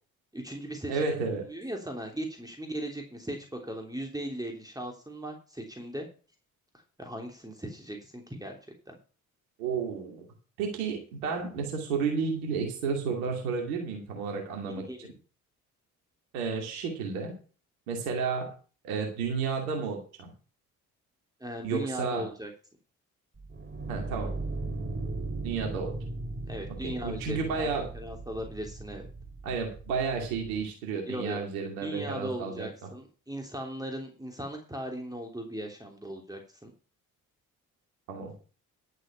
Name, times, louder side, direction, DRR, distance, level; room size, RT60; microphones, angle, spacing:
voice 1, 0.3-1.1 1.5-3.4 3.6-6.1 7.0-8.5 8.9-9.0 14.7-15.2 21.4-22.5 26.5-29.0 31.0-31.4 31.8-36.7, right 1 dB, 10° right, 2 dB, 3.2 m, -38 dB
voice 2, 0.9-1.5 9.6-10.2 10.6-14.8 16.3-17.3 17.9-18.5 18.8-20.3 21.6-22.3 23.9-24.3 25.4-25.9 26.8-27.8 29.4-32.9 38.1-38.3, right 5 dB, 75° right, 2 dB, 2.6 m, -32 dB
sound 1, 23.4-30.6, right 2 dB, 25° right, 2.8 m, -38 dB
11.5 x 8.0 x 5.8 m, 0.37 s
figure-of-eight pair, 45°, 43 cm